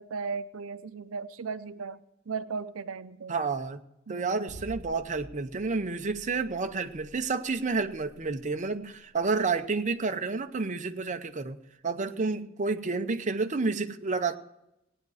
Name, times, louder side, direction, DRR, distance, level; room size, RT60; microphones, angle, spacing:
voice 1, 0.0-2.0 2.3-3.3 4.1-4.6 12.1-12.4, right 5 dB, 90° right, 13 dB, 0.6 m, -37 dB
voice 2, 3.3-3.8 4.1-11.6 11.8-14.4, right 4 dB, 35° right, 7 dB, 0.7 m, -30 dB
sound 1, 4.5-10.6, right 1 dB, 35° left, 2.9 m, -50 dB
17.5 x 9.5 x 4.8 m, 0.88 s
head